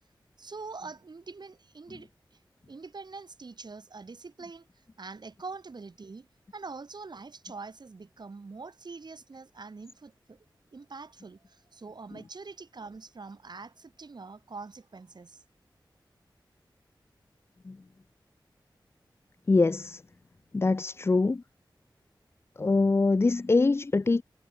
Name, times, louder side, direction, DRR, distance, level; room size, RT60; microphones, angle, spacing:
voice 1, 0.4-2.1 2.7-4.7 5.0-6.3 6.5-10.4 10.7-15.4, right 4 dB, 55° right, 1.0 m, -44 dB
voice 2, 19.5-20.0 20.5-21.4 22.6-24.2, left 3 dB, 30° left, 0.3 m, -24 dB
cardioid pair, 45°, 9 cm